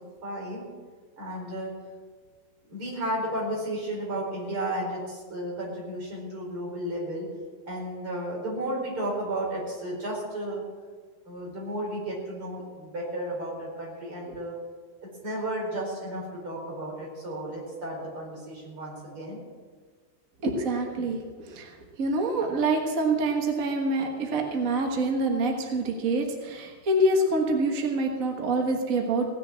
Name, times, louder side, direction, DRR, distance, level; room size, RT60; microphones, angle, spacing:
voice 1, 0.2-0.7 1.2-1.7 2.7-7.3 7.7-10.6 11.3-14.6 15.0-19.4, right 1 dB, 80° right, -3 dB, 5.6 m, -33 dB
voice 2, 20.4-21.2 21.5-21.7 22.0-29.3, right 2 dB, 45° right, 2 dB, 1.7 m, -26 dB
17.5 x 6.9 x 8.6 m, 1.5 s
omnidirectional pair, 2.3 m